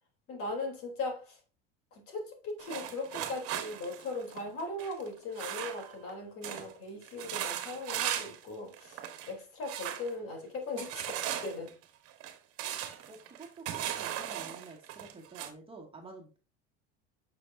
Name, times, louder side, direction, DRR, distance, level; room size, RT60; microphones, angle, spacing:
voice 1, 0.3-1.4 1.9-11.7, left 2 dB, 50° left, 3.6 m, -39 dB
sound 1, 2.6-6.1 6.4-6.7 7.0-8.4 8.7-9.3 9.7-10.1 10.8-15.5, right 11 dB, 50° right, 1.6 m, -38 dB
voice 2, 13.1-16.4, right 3 dB, 20° right, 2.2 m, -49 dB
9.4 x 6.4 x 2.7 m
supercardioid pair, 115°, 30 cm